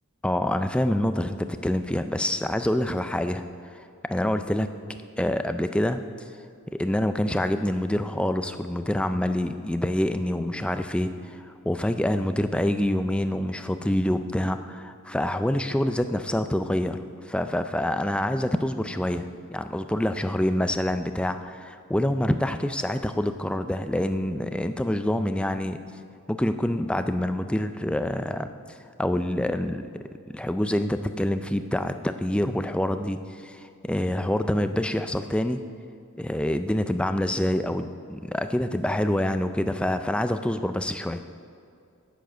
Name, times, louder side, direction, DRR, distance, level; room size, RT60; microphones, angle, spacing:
voice 1, 0.2-4.7 5.2-6.0 6.7-17.0 17.2-25.8 26.3-29.9 30.3-35.6 36.2-41.2, left 1 dB, 5° left, 9 dB, 0.3 m, -26 dB
9.3 x 9.2 x 6.2 m, 2.4 s
head